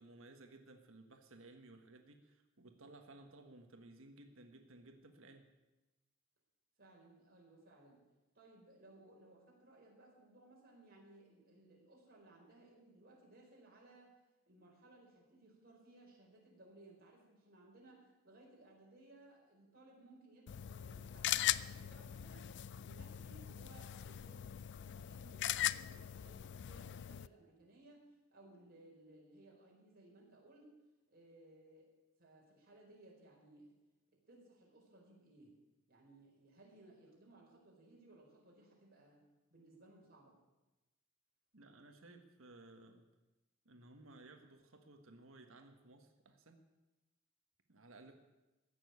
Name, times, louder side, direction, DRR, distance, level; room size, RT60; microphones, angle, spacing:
voice 1, 0.0-5.5 41.5-43.1 43.6-46.6 47.7-48.1, right 2 dB, 75° right, 5 dB, 1.4 m, -58 dB
voice 2, 6.8-8.0 8.3-14.1 14.5-22.5 22.8-30.7 31.1-31.9 32.2-33.8 34.1-35.5 35.9-39.2 39.5-40.4, right 2 dB, 50° right, -2 dB, 4.8 m, -62 dB
sound 1, 20.5-27.3, left 12 dB, 55° left, 0.4 m, -40 dB
16.0 x 7.0 x 9.7 m, 1.1 s
head